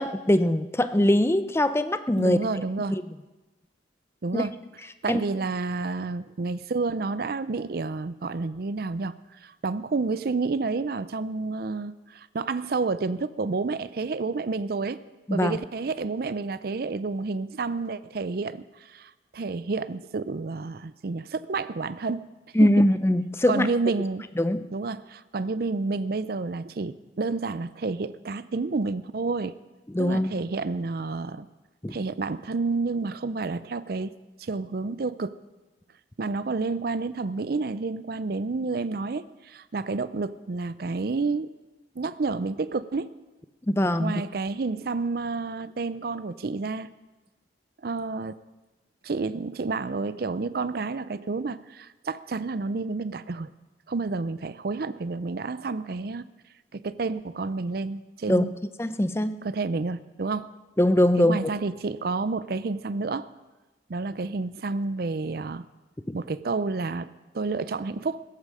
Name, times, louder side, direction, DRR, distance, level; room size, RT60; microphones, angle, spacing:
voice 1, 0.0-2.4 2.9-3.0 4.3-4.4 5.1-5.2 15.3-15.6 22.5-23.7 24.4-24.6 29.9-30.3 31.8-31.9 43.7-44.1 58.3-58.5 58.8-59.4 60.8-61.5 66.1-66.2, left 1 dB, 15° left, 11 dB, 0.6 m, -22 dB
voice 2, 2.2-3.0 4.2-4.6 5.0-9.1 9.4-15.0 15.3-22.3 22.6-22.7 23.5-24.3 24.7-29.5 30.0-31.5 31.9-34.1 34.4-35.4 36.2-41.5 42.0-43.1 44.0-46.9 47.8-48.4 49.0-53.5 53.9-56.3 56.7-58.5 59.4-60.5 61.2-63.3 63.9-65.6 66.1-68.2, right 3 dB, 55° right, 15 dB, 0.5 m, -30 dB
16.5 x 14.0 x 4.9 m, 1.1 s
head